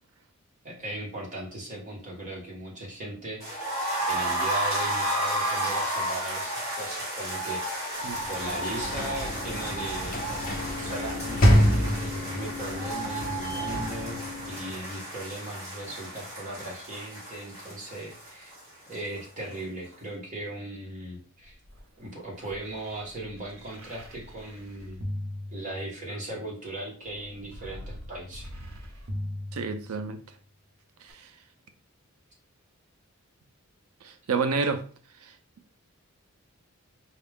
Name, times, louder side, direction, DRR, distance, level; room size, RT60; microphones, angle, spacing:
voice 1, 0.6-3.6 4.1-7.7 8.3-10.2 10.8-18.5 18.9-21.6 22.0-25.0 25.5-28.5, right 1 dB, 35° right, 1.3 m, -38 dB
sound 1, 3.4-19.2 19.5-19.6 19.9-20.0, right 1 dB, 15° right, 2.0 m, -32 dB
Sliding door / Slam, 8.0-15.0, equal, 40° left, 0.8 m, -27 dB
sound 2, 21.4-26.3 27.0-30.3 31.1-31.2, left 1 dB, 60° right, 0.9 m, -41 dB
voice 2, 29.5-30.2 31.1-31.3 34.0-34.9, right 4 dB, 80° right, 0.5 m, -29 dB
4.3 x 2.4 x 3.4 m
head